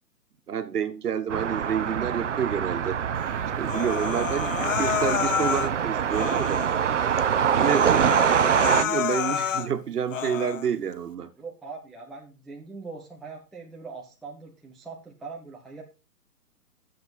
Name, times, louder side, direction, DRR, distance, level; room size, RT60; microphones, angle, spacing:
voice 1, 0.5-3.0 3.6-6.7 7.5-11.3, right 8 dB, 70° right, 1.4 m, -29 dB
sound 1, 1.3-8.8, right 8 dB, 50° right, 0.6 m, -25 dB
Human voice, 3.6-5.7 6.1-6.8 7.2-7.3 7.6-9.7 10.1-10.7, left 8 dB, 55° left, 0.5 m, -29 dB
voice 2, 11.4-15.8, right 4 dB, ahead, 0.4 m, -41 dB
9.9 x 7.4 x 4.1 m
hypercardioid pair, 175°, 48 cm